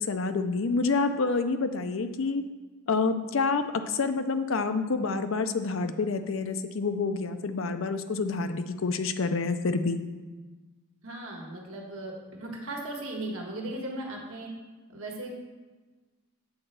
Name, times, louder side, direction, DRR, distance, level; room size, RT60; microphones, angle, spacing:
voice 1, 0.0-2.4 2.9-10.0, left 4 dB, 70° left, 9 dB, 0.5 m, -28 dB
voice 2, 11.0-14.5 14.9-15.3, right 1 dB, 85° right, 0 dB, 1.5 m, -37 dB
8.2 x 4.3 x 6.5 m, 1.3 s
head